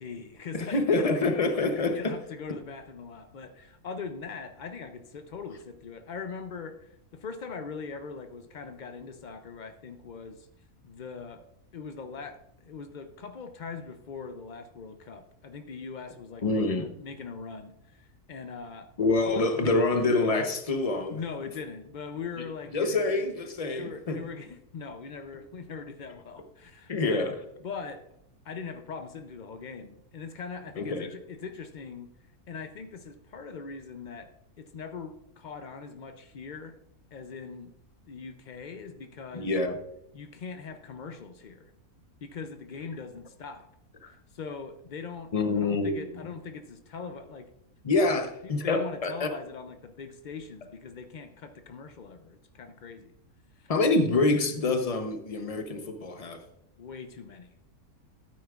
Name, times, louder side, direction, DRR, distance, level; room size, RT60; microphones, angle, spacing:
voice 1, 0.0-1.5 1.9-10.5 10.8-11.4 11.7-18.9 19.2-19.8 21.1-23.1 23.7-27.3 27.6-28.0 28.4-32.1 32.5-34.3 34.6-36.8 37.1-37.7 38.0-39.5 40.1-41.7 42.2-43.7 44.1-47.5 47.9-48.1 48.4-53.1 53.6-53.7 56.8-57.6, left 5 dB, 90° left, 0.4 m, -41 dB
voice 2, 0.5-2.2 16.4-16.9 19.0-21.2 22.7-24.2 26.9-27.3 30.8-31.1 39.3-39.8 44.0-44.1 45.3-46.3 47.8-49.3 53.7-56.4, left 3 dB, 35° left, 0.6 m, -26 dB
12.5 x 9.4 x 2.4 m
omnidirectional pair, 1.6 m